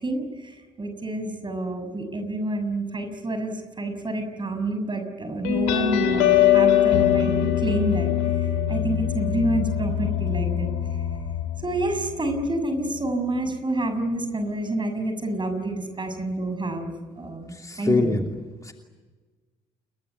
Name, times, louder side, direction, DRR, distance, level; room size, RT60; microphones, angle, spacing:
voice 1, 0.0-8.1 8.4-10.7 11.6-18.2, right 1 dB, 25° right, 8 dB, 6.7 m, -28 dB
sound 1, 5.4-12.6, left 11 dB, 70° left, 3.3 m, -23 dB
voice 2, 17.5-18.2 18.6-18.7, left 2 dB, 20° left, 3 dB, 2.9 m, -24 dB
29.5 x 22.0 x 8.3 m, 1.3 s
figure-of-eight pair, 45°, 18 cm